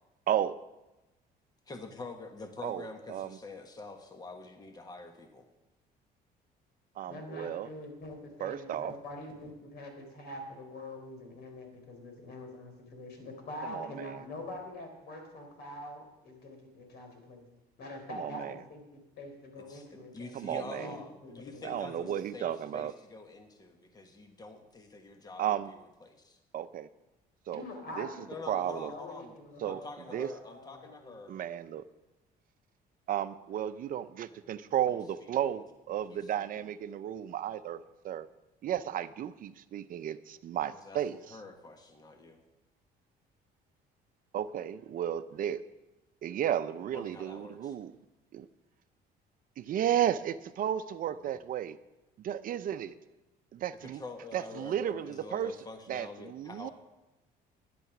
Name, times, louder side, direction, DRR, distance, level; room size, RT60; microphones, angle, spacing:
voice 1, 1.7-5.5 19.6-19.9 20.1-26.4 28.3-29.4 29.7-31.3 34.3-34.7 36.1-36.7 40.7-42.4 46.9-47.7 51.1-51.4 53.8-56.7, left 3 dB, 25° left, 5 dB, 1.4 m, -46 dB
voice 2, 2.6-3.4 7.0-7.7 8.4-8.9 13.7-14.2 18.2-18.5 20.3-20.9 21.6-22.9 25.4-25.7 26.5-26.9 27.5-27.7 28.0-28.1 28.5-28.9 29.6-29.8 30.1-30.3 31.3-31.8 33.1-38.3 38.6-41.4 44.3-45.6 46.2-47.9 48.3-48.5 49.6-51.8 52.2-53.0 53.5-54.0 54.3-55.5 55.9-56.7, right 10 dB, 55° right, 12 dB, 0.6 m, -33 dB
voice 3, 7.1-17.5 17.8-20.3 20.7-22.1 27.5-31.2, left 1 dB, 70° left, 4 dB, 3.7 m, -45 dB
12.5 x 10.5 x 6.0 m, 1.0 s
cardioid pair, 110°, 17 cm